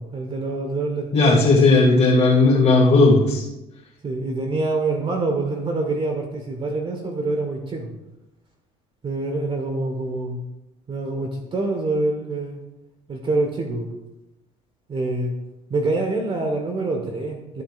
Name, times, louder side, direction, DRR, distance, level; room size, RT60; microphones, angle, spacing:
voice 1, 0.0-2.0 4.0-7.9 9.0-10.4 10.9-12.6 13.1-13.9 14.9-15.3 15.7-17.6, right 2 dB, 35° right, 3 dB, 1.5 m, -26 dB
voice 2, 1.1-3.5, left 3 dB, 50° left, -6 dB, 2.3 m, -15 dB
14.0 x 7.5 x 2.6 m, 0.95 s
supercardioid pair, 75°, 15 cm